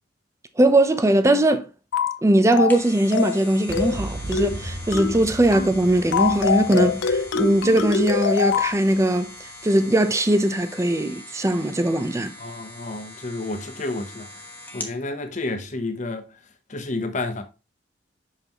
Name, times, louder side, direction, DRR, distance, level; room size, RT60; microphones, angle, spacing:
voice 1, 0.6-1.7 2.2-9.3 9.6-12.3, right 1 dB, 15° right, 0.5 m, -20 dB
sound 1, 1.9-2.2 2.5-2.8 3.1-3.4 3.7-4.0 4.3-4.6 4.9-5.2 5.5-5.8 6.1-8.8, left 6 dB, 85° left, 0.5 m, -24 dB
sound 2, 2.4-15.0 15.4-15.5, left 2 dB, 10° left, 1.2 m, -42 dB
Boom, 3.7-9.6, right 1 dB, 65° right, 1.2 m, -37 dB
voice 2, 12.4-14.4 14.7-16.4 16.7-17.4, left 2 dB, 40° left, 0.9 m, -30 dB
5.9 x 5.6 x 2.9 m
head